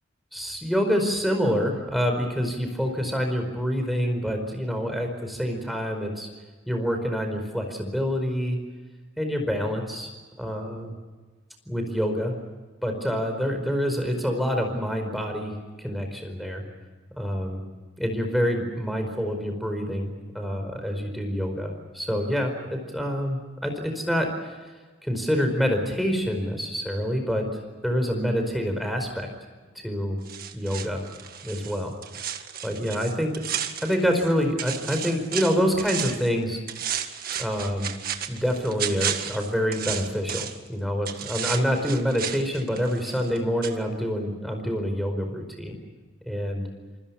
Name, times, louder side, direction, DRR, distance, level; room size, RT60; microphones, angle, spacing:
voice 1, 0.3-6.3 6.7-8.6 9.2-10.1 10.4-11.0 11.7-12.3 12.8-15.5 15.8-16.6 17.2-17.6 18.0-24.5 25.0-27.4 27.8-29.3 29.7-30.2 30.5-31.0 31.4-31.9 32.6-33.3 33.8-36.6 37.4-37.9 38.3-45.7 46.3-46.7, equal, ahead, 4 dB, 4.8 m, -26 dB
sound 1, 30.3-34.3 34.6-36.3 36.7-40.7 41.0-43.4 43.6-43.7, right 9 dB, 50° right, 1.9 m, -33 dB
28.0 x 25.5 x 6.1 m, 1.3 s
head